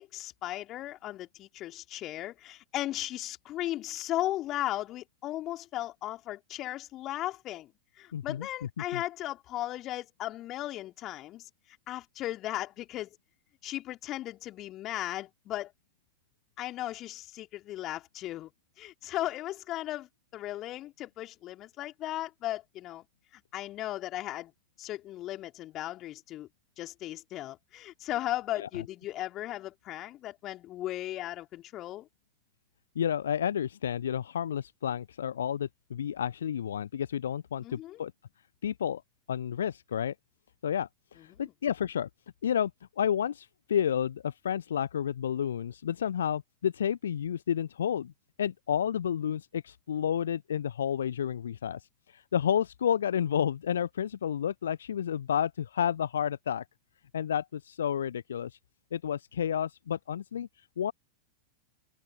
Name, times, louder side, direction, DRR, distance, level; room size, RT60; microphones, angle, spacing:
voice 1, 0.0-7.7 8.0-11.5 11.9-13.1 13.6-15.7 16.6-18.5 18.8-23.0 23.3-24.5 24.8-26.5 26.8-32.1 37.6-38.0 41.2-41.5, left 14 dB, 35° left, 3.3 m, -36 dB
voice 2, 8.1-8.5 8.9-9.0 28.6-28.7 33.0-38.1 38.6-39.0 39.3-40.1 40.6-42.1 42.4-42.7 43.0-48.1 48.4-51.8 52.1-56.6 57.1-58.5 58.9-60.5 60.8-60.9, left 9 dB, 65° left, 0.8 m, -30 dB
figure-of-eight pair, 90°, 0 cm